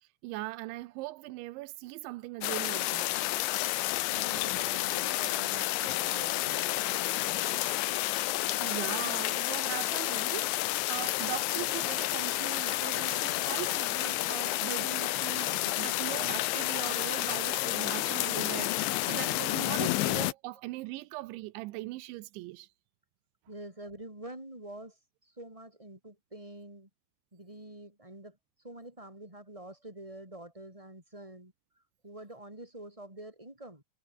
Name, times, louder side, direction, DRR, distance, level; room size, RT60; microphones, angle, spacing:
voice 1, 0.0-3.2 8.4-10.6 10.9-22.7, right 19 dB, 85° right, 3.1 m, -40 dB
sound 1, 2.4-20.3, left 17 dB, 80° left, 3.3 m, -30 dB
voice 2, 4.1-7.8 23.5-26.9 27.3-31.5 32.0-33.8, right 1 dB, 5° right, 7.2 m, -47 dB
omnidirectional pair, 5.3 m